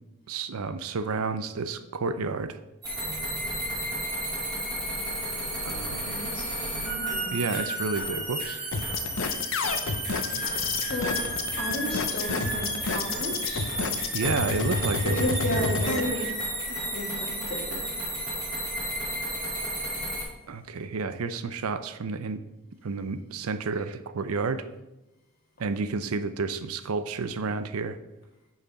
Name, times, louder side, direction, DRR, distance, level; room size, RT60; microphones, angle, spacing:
voice 1, 0.3-2.6 5.6-6.2 7.3-8.6 10.4-10.7 14.1-16.1 20.5-22.4 22.8-24.6 25.6-28.0, right 4 dB, 80° right, 11 dB, 0.5 m, -31 dB
sound 1, 2.8-20.2, right 1 dB, 20° right, 3.2 m, -32 dB
voice 2, 6.1-7.6 10.2-13.7 15.0-16.4 16.7-18.0, left 1 dB, 45° left, -1 dB, 2.0 m, -34 dB
sound 2, 8.7-16.0, left 4 dB, 60° left, 0.7 m, -29 dB
6.7 x 5.8 x 5.3 m, 0.98 s
head